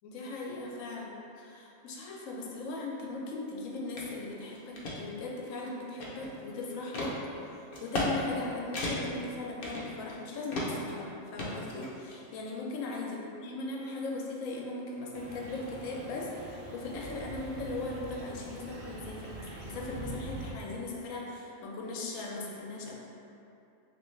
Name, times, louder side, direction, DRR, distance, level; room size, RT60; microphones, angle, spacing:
voice 1, 0.0-7.2 7.5-23.0, left 2 dB, 90° left, -2 dB, 1.0 m, -38 dB
sound 1, 4.0-4.1 4.5-5.0 5.5-6.4 6.9-7.1 7.7-8.1 8.4-8.5 8.7-9.2 9.6-10.2 10.5-10.9 11.4-12.2, left 1 dB, 55° left, 0.7 m, -35 dB
sound 2, 15.1-20.5, right 2 dB, 70° right, 0.9 m, -44 dB
3.0 x 2.9 x 3.2 m, 2.7 s
omnidirectional pair, 1.3 m